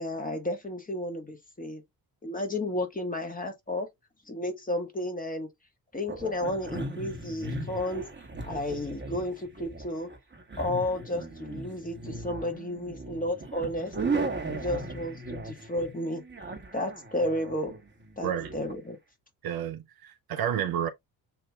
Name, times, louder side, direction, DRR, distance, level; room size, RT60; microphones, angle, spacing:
voice 1, 0.0-1.8 2.2-3.9 4.3-5.5 5.9-8.1 8.4-10.1 10.6-13.9 14.5-16.2 16.7-17.8 18.2-19.0, left 1 dB, 15° left, 1.5 m, -32 dB
sound 1, 6.1-18.8, right 3 dB, 20° right, 1.4 m, -37 dB
voice 2, 18.2-18.5 19.4-20.9, right 9 dB, 45° right, 0.7 m, -30 dB
7.0 x 2.8 x 2.3 m
figure-of-eight pair, 40°, 49 cm